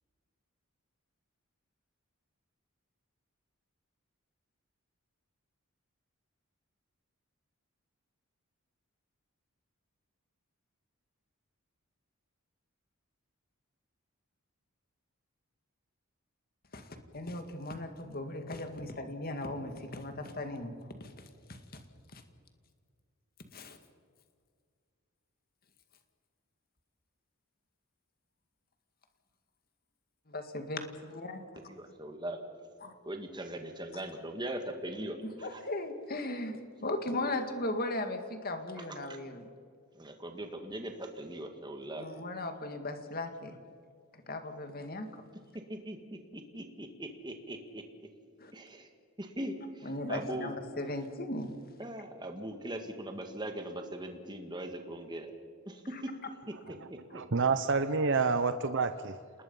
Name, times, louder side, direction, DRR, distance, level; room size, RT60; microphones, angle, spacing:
voice 1, 16.7-20.7 21.0-21.1 21.5-21.6 22.1-22.2 23.5-23.8 30.3-31.7 32.8-32.9 35.2-39.5 41.9-43.6 44.3-45.1 48.4-48.5 49.8-51.6 55.9-56.0, left 2 dB, 45° left, 7 dB, 2.1 m, -37 dB
voice 2, 31.7-32.4 33.1-35.2 40.0-42.0 45.9-46.0 46.5-47.8 48.5-48.9 49.2-50.5 51.8-55.3 55.7-55.8, right 1 dB, 20° right, 5 dB, 2.0 m, -40 dB
voice 3, 56.8-59.2, right 4 dB, 55° right, 10 dB, 0.8 m, -29 dB
28.0 x 20.0 x 5.6 m, 2.2 s
head